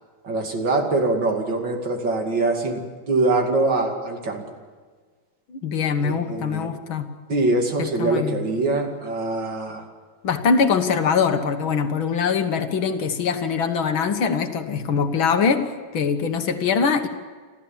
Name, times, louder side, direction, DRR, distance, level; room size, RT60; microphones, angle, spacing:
voice 1, 0.2-2.8 3.1-4.5 6.0-6.7 7.3-9.8, right 2 dB, 60° right, 3 dB, 3.1 m, -23 dB
voice 2, 5.5-7.1 7.8-8.4 10.2-15.6 15.9-17.1, left 5 dB, 75° left, 7 dB, 2.2 m, -22 dB
29.5 x 13.0 x 7.3 m, 1.5 s
omnidirectional pair, 2.2 m